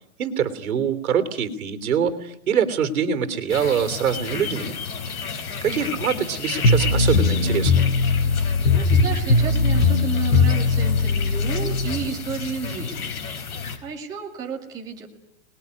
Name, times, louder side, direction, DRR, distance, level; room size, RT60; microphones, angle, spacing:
voice 1, 0.2-4.7 5.6-7.8, right 7 dB, 70° right, 11 dB, 3.4 m, -24 dB
sound 1, 3.5-13.8, left 6 dB, 75° left, 4.8 m, -32 dB
voice 2, 5.7-6.0 8.7-13.2 13.8-15.1, right 6 dB, 10° right, -3 dB, 2.2 m, -32 dB
sound 2, 6.6-12.0, left 4 dB, 55° left, 3.6 m, -19 dB
28.5 x 20.5 x 9.6 m, 0.77 s
hypercardioid pair, 180°, 45 cm